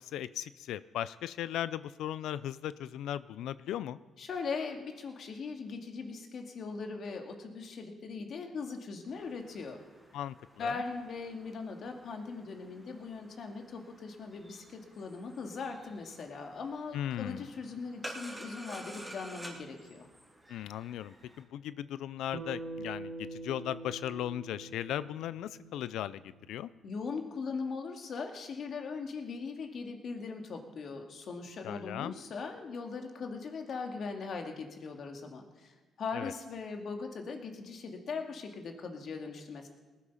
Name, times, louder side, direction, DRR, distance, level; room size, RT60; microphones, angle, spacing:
voice 1, 0.0-4.0 10.1-10.7 16.9-17.5 20.5-26.2 26.5-26.7 31.6-32.1 36.1-36.3, left 11 dB, 85° left, 17 dB, 0.4 m, -37 dB
voice 2, 4.2-9.8 10.6-20.1 26.8-39.7, left 4 dB, 60° left, 4 dB, 2.0 m, -40 dB
sound 1, 9.1-21.4, right 1 dB, 5° right, 3.3 m, -51 dB
Bass guitar, 22.3-26.8, right 2 dB, 65° right, 1.8 m, -44 dB
19.0 x 8.7 x 5.7 m, 1.3 s
cardioid pair, 90°, 0 cm